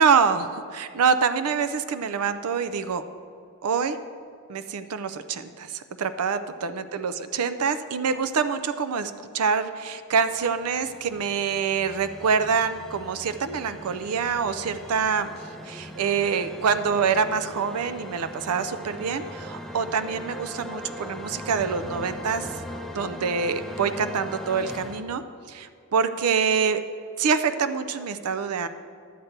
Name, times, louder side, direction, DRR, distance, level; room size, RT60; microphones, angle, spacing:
voice 1, 0.0-3.0 3.6-4.0 4.5-15.3 15.7-22.5 22.9-25.2 25.5-26.8 27.2-28.7, right 6 dB, 80° right, 11 dB, 0.5 m, -25 dB
sound 1, 10.3-25.0, equal, ahead, 0.5 m, -40 dB
11.0 x 8.0 x 4.4 m, 2.4 s
head